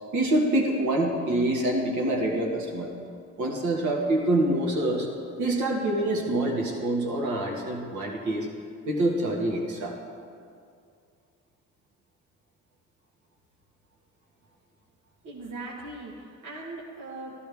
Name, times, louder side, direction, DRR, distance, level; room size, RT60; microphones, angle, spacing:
voice 1, 0.1-2.9 3.4-5.1 5.4-8.5 8.9-9.9, right 1 dB, 75° right, 0 dB, 1.9 m, -26 dB
voice 2, 15.2-17.4, right 2 dB, 90° right, -4 dB, 1.5 m, -39 dB
13.5 x 13.0 x 3.6 m, 2.3 s
cardioid pair, 90°, 30 cm